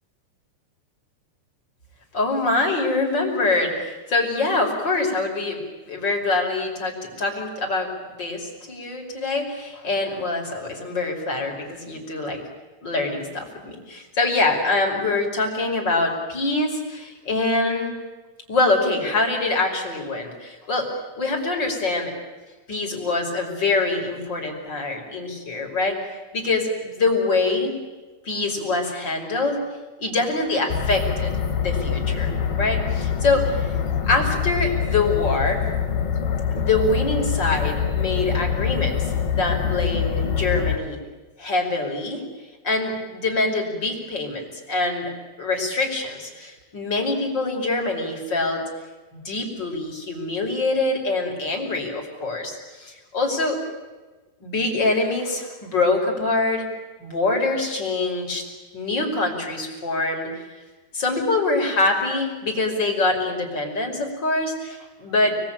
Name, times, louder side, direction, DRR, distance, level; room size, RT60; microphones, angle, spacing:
voice 1, 2.1-12.4 12.8-18.0 18.5-22.1 22.7-26.0 26.3-27.7 28.3-29.6 30.0-31.3 31.6-33.7 34.1-35.7 36.5-39.1 39.3-41.0 41.4-42.2 42.6-45.1 45.4-48.6 49.1-53.6 54.4-56.7 57.0-60.6 60.9-65.4, left 3 dB, 25° left, 1 dB, 5.4 m, -24 dB
sound 1, 30.7-40.8, left 7 dB, 60° left, 4.5 m, -24 dB
30.0 x 22.0 x 9.0 m, 1.2 s
omnidirectional pair, 5.5 m